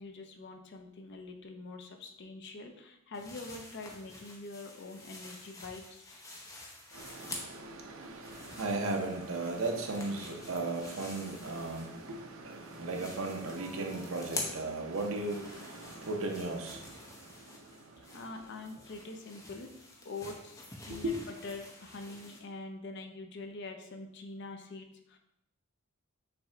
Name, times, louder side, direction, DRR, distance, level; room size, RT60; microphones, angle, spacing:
voice 1, 0.0-6.2 18.0-19.7 20.0-25.2, left 3 dB, 55° left, 5 dB, 0.5 m, -45 dB
sound 1, 3.1-7.7 8.0-12.2 12.5-22.4, left 2 dB, 15° left, 0.6 m, -47 dB
voice 2, 6.9-16.9 20.9-21.1, right 2 dB, 70° right, 3 dB, 0.7 m, -36 dB
5.8 x 2.2 x 3.7 m, 0.78 s
head